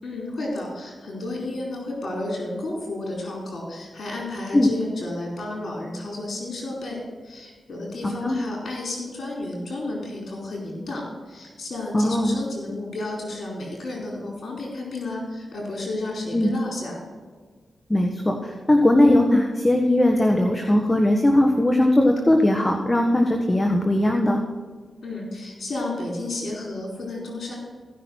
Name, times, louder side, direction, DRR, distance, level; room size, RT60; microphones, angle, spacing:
voice 1, 0.0-17.1 25.0-27.6, left 2 dB, 60° left, -2 dB, 4.3 m, -32 dB
voice 2, 11.9-12.4 16.3-16.5 17.9-24.4, left 1 dB, 25° left, 3 dB, 1.5 m, -19 dB
16.5 x 6.0 x 6.3 m, 1.5 s
cardioid pair, 50°, 0 cm